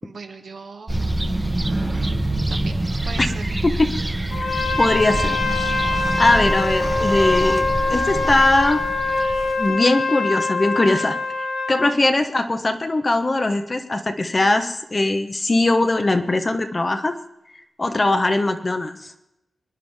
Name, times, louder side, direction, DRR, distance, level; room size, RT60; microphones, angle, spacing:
voice 1, 0.0-1.0 1.9-2.2 2.5-3.4 17.9-18.2, right 4 dB, 65° right, 4 dB, 1.7 m, -39 dB
sound 1, 0.9-9.7, right 1 dB, 15° right, 1.1 m, -25 dB
voice 2, 3.6-3.9 4.8-5.8 6.2-8.9 9.6-11.2 11.7-17.2 17.8-19.1, left 2 dB, 30° left, 7 dB, 1.1 m, -20 dB
Trumpet, 4.3-12.0, left 3 dB, 70° left, 3.3 m, -24 dB
24.5 x 10.0 x 3.6 m, 0.85 s
wide cardioid pair, 100°, 0 cm